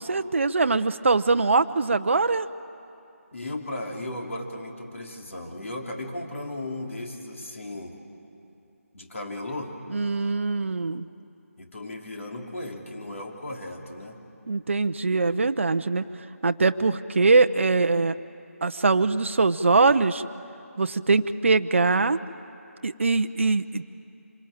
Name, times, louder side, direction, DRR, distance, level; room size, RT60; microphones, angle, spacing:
voice 1, 0.0-2.5 9.9-11.1 14.5-16.0 16.4-18.2 18.6-20.2 20.8-22.2 22.8-23.9, right 3 dB, 55° right, 10 dB, 0.7 m, -22 dB
voice 2, 3.3-8.0 8.9-9.7 10.9-11.0 11.6-14.2, left 1 dB, 60° left, 1 dB, 3.2 m, -36 dB
26.5 x 21.0 x 8.9 m, 2.7 s
figure-of-eight pair, 160°, 8 cm